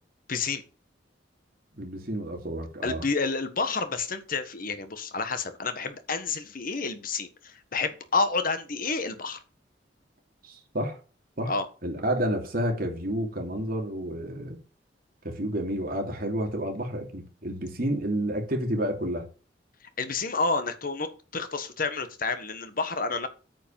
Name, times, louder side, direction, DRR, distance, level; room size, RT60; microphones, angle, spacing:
voice 1, 0.3-0.6 2.8-9.4 11.4-11.6 20.0-23.3, left 4 dB, 50° left, 1.4 m, -29 dB
voice 2, 1.7-3.0 10.4-11.0 11.4-11.5 11.8-14.6 15.2-19.2, right 1 dB, 55° right, 2.8 m, -30 dB
9.1 x 5.2 x 7.1 m
head